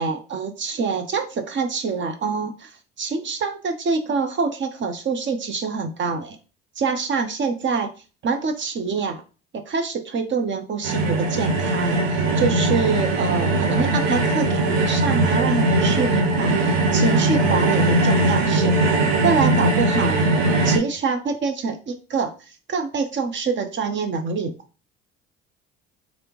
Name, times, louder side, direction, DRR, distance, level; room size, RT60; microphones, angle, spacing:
voice 1, 0.0-6.4 6.8-7.9 8.2-9.2 9.5-18.8 19.2-20.3 20.6-22.3 22.7-24.5, right 5 dB, 40° right, 7 dB, 0.8 m, -25 dB
sound 1, 10.8-20.8, right 2 dB, 85° right, 0.7 m, -20 dB
3.3 x 2.6 x 3.0 m, 0.34 s
hypercardioid pair, 60°, 29 cm